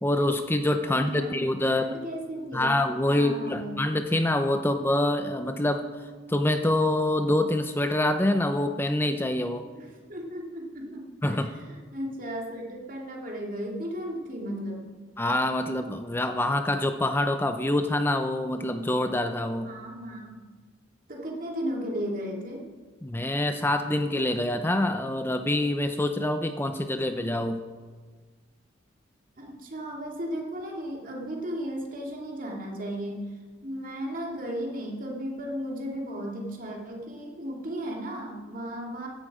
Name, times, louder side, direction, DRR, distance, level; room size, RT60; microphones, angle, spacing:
voice 1, 0.0-1.9 2.5-5.8 6.3-9.6 11.2-11.5 15.2-19.7 23.0-27.6, left 1 dB, 10° left, 7 dB, 0.6 m, -26 dB
voice 2, 0.8-2.8 3.1-3.8 9.7-14.9 19.7-20.4 21.1-22.6 29.4-39.1, equal, 45° right, -1 dB, 2.8 m, -35 dB
16.0 x 11.5 x 4.9 m, 1.5 s
head